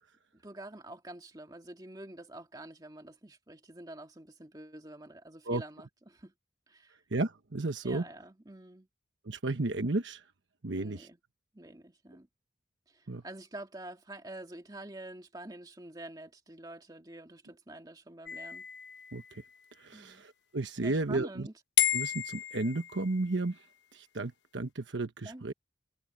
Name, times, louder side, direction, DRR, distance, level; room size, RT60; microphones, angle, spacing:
voice 1, 0.3-6.3 6.7-7.0 7.8-8.9 10.7-11.2 11.5-12.3 12.9-18.7 19.9-20.2 20.8-21.5 25.3-25.5, right 1 dB, 20° right, 1.9 m, -47 dB
voice 2, 7.1-8.0 9.2-10.2 10.6-11.1 13.1-13.2 19.1-19.4 19.8-21.5 21.9-23.6 23.9-25.5, right 2 dB, 85° right, 1.1 m, -33 dB
sound 1, 18.3-19.8 21.8-23.4, left 11 dB, 75° left, 1.0 m, -33 dB
head